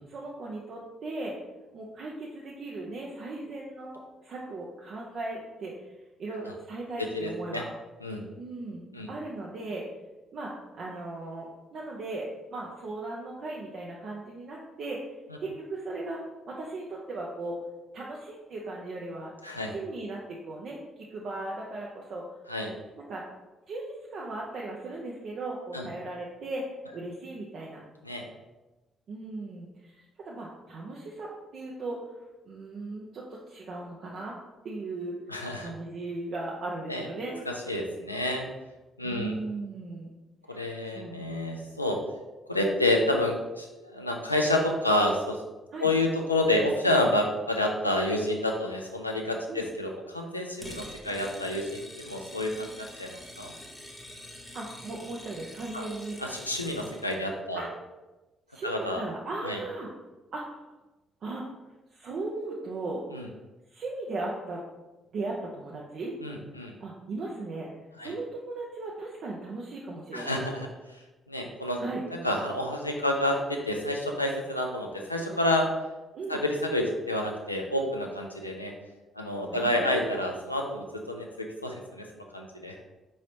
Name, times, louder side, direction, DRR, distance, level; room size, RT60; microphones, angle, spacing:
voice 1, 0.1-1.3 1.7-7.6 8.4-9.8 10.3-15.0 15.4-16.2 16.5-17.6 17.9-19.3 19.7-22.2 23.0-23.2 23.7-27.8 29.1-32.0 32.5-34.3 34.6-35.1 35.6-37.4 39.0-40.1 40.5-40.7 40.9-41.1 45.7-45.9 49.5-49.7 54.5-56.2 57.5-57.7 58.5-59.9 60.3-60.7 61.2-61.4 61.9-63.0 63.7-64.6 65.1-66.2 66.8-67.7 68.0-70.5 71.8-72.0 76.1-76.4 79.2-80.2, right 2 dB, 50° right, -3 dB, 0.5 m, -37 dB
voice 2, 7.1-7.6 8.0-8.3 8.9-9.1 19.4-19.7 22.5-22.7 25.7-25.9 28.0-28.3 35.3-35.7 36.9-37.0 37.5-38.5 39.0-39.3 40.5-42.0 42.5-45.4 45.8-53.5 55.7-55.8 56.2-57.6 58.6-59.0 59.4-59.6 63.1-63.2 66.2-66.7 68.0-68.1 70.1-70.7 70.9-71.0 71.3-71.8 72.1-75.7 76.3-78.7 79.2-82.8, left 1 dB, 90° left, 1 dB, 0.3 m, -29 dB
sound 1, 50.6-57.2, left 1 dB, 15° left, 0.7 m, -46 dB
4.8 x 3.1 x 2.8 m, 1.1 s
figure-of-eight pair, 40°, 0 cm